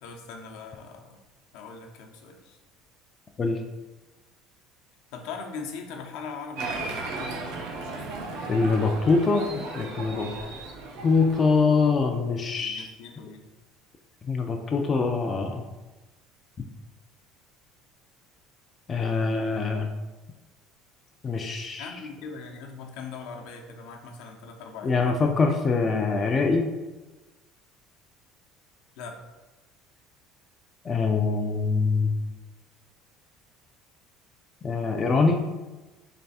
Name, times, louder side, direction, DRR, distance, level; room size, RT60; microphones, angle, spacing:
voice 1, 0.0-1.2 1.5-2.6 5.1-7.4 10.2-10.6 12.6-13.4 21.8-25.4 29.0-29.2, left 5 dB, 75° left, 2 dB, 0.7 m, -41 dB
Applause, 6.6-11.6, right 3 dB, 85° right, 0.8 m, -35 dB
voice 2, 8.5-10.3 11.0-12.9 14.2-15.6 18.9-19.9 21.2-21.9 24.8-26.7 30.8-32.2 34.6-35.4, left 4 dB, 25° left, 2 dB, 0.3 m, -24 dB
3.3 x 3.2 x 4.1 m, 1.2 s
cardioid pair, 155°, 0 cm